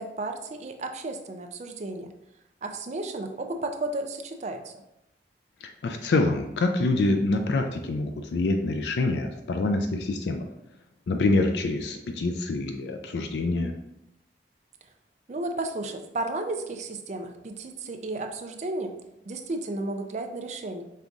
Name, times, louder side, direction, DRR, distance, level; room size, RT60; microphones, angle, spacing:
voice 1, 0.0-2.1 2.6-4.7 15.3-19.0 19.3-20.8, right 2 dB, 40° right, 5 dB, 0.4 m, -33 dB
voice 2, 5.6-10.5 11.1-13.8, left 2 dB, 75° left, 5 dB, 0.4 m, -26 dB
5.4 x 3.5 x 2.5 m, 0.87 s
head